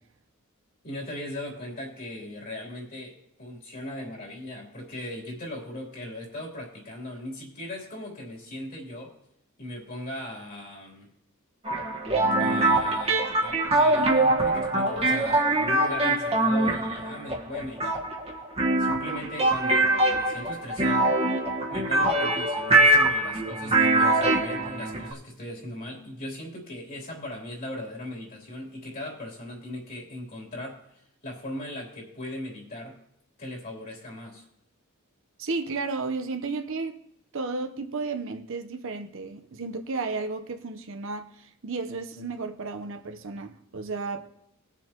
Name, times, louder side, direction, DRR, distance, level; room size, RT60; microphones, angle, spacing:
voice 1, 0.8-9.1 9.6-11.1 12.4-18.0 18.8-21.2 21.7-30.8 31.2-33.0 33.4-34.4, left 1 dB, 45° left, 3.3 m, -38 dB
sound 1, 11.7-25.1, right 2 dB, 30° right, 1.4 m, -23 dB
voice 2, 35.4-37.0 37.3-44.3, right 3 dB, 65° right, 0.9 m, -33 dB
19.0 x 7.2 x 3.0 m
head